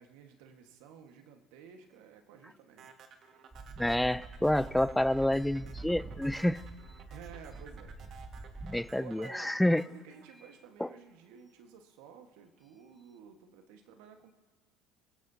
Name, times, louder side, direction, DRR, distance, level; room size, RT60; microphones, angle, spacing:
voice 1, 0.0-2.9 7.1-8.0 9.0-14.3, right 7 dB, 75° right, 5 dB, 1.4 m, -53 dB
sound 1, 2.8-11.1, right 7 dB, 55° right, 1.6 m, -55 dB
sound 2, 3.5-8.8, right 3 dB, 25° right, 2.7 m, -46 dB
voice 2, 3.8-6.6 8.6-9.8 10.8-10.9, left 1 dB, 5° left, 18 dB, 0.4 m, -28 dB
30.0 x 15.5 x 2.8 m, 1.3 s
supercardioid pair, 85°, 0 cm